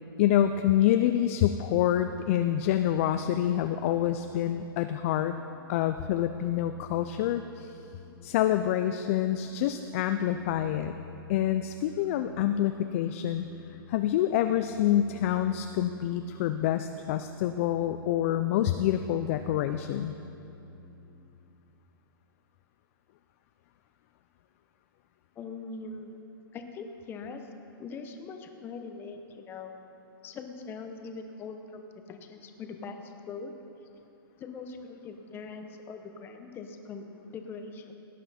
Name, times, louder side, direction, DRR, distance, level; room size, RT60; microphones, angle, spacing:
voice 1, 0.2-5.3 5.7-7.7 8.2-10.9 11.3-13.5 13.9-20.1, left 11 dB, 35° left, 8 dB, 0.4 m, -27 dB
sound 1, 2.5-21.2, left 3 dB, 70° left, 2.6 m, -51 dB
voice 2, 25.4-26.1 26.5-27.4 27.8-29.7 30.2-33.5 34.4-37.9, left 4 dB, 15° left, 5 dB, 0.8 m, -42 dB
17.0 x 9.4 x 4.2 m, 2.9 s
hypercardioid pair, 150°, 12 cm